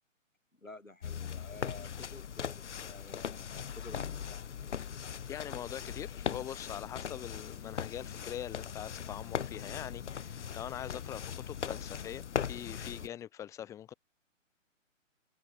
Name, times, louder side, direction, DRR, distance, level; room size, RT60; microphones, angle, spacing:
voice 1, 0.6-4.5 10.5-10.6 13.0-13.1, left 2 dB, 85° left, 3.2 m, -51 dB
sound 1, 1.0-13.1, left 8 dB, 65° left, 0.6 m, -39 dB
voice 2, 5.0-13.9, left 10 dB, 10° left, 1.0 m, -43 dB
figure-of-eight pair, 130°, 39 cm